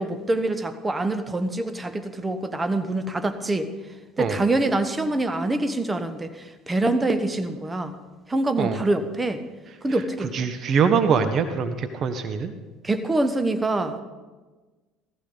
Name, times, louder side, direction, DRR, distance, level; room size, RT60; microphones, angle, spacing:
voice 1, 0.0-3.7 4.2-8.0 8.3-9.4 9.8-10.3 12.8-14.0, right 2 dB, 20° right, 9 dB, 1.2 m, -25 dB
voice 2, 10.3-12.5, right 6 dB, 45° right, 9 dB, 0.9 m, -23 dB
16.0 x 14.5 x 3.9 m, 1.3 s
hypercardioid pair, 65°, 0 cm